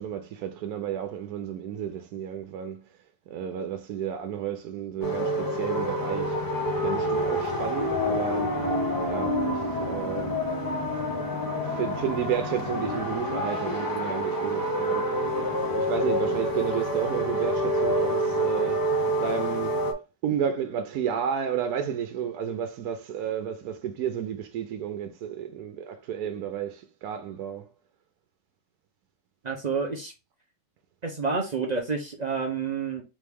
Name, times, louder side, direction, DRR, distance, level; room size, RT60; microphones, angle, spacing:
voice 1, 0.0-2.9 3.3-6.4 6.8-8.6 9.1-10.4 11.4-15.3 15.6-19.8 20.2-27.7, right 8 dB, 80° right, 1.2 m, -32 dB
sound 1, 5.0-19.9, equal, 20° left, 0.7 m, -27 dB
voice 2, 29.4-30.1 31.0-33.0, right 4 dB, 45° right, 0.5 m, -29 dB
3.8 x 3.2 x 3.4 m
omnidirectional pair, 1.6 m